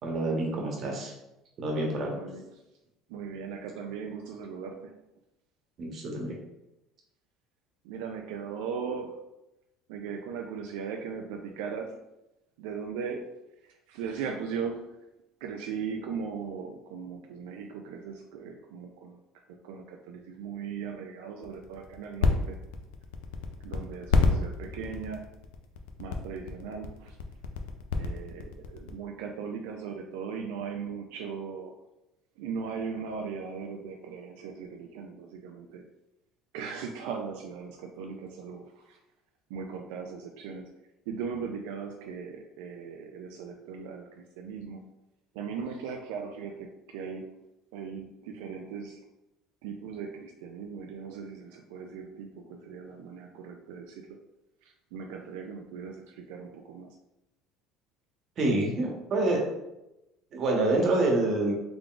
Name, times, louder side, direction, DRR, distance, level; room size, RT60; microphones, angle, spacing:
voice 1, 0.0-1.1 1.6-2.1 5.8-6.4 58.4-59.4 60.3-61.5, right 2 dB, 45° right, -1 dB, 1.1 m, -27 dB
voice 2, 2.1-2.5 3.1-4.9 7.8-9.2 9.9-12.0 12.6-13.2 13.7-15.0 15.4-22.6 23.6-25.3 26.0-27.2 28.0-31.7 32.4-35.8 36.5-39.0 39.5-40.7 41.1-44.8 45.3-47.3 47.7-49.0 49.6-54.2 54.6-57.0, right 6 dB, 90° right, 2 dB, 0.3 m, -38 dB
sound 1, 21.4-28.9, left 5 dB, 90° left, 0.4 m, -29 dB
3.7 x 3.4 x 2.4 m, 0.92 s
cardioid pair, 125°, 0 cm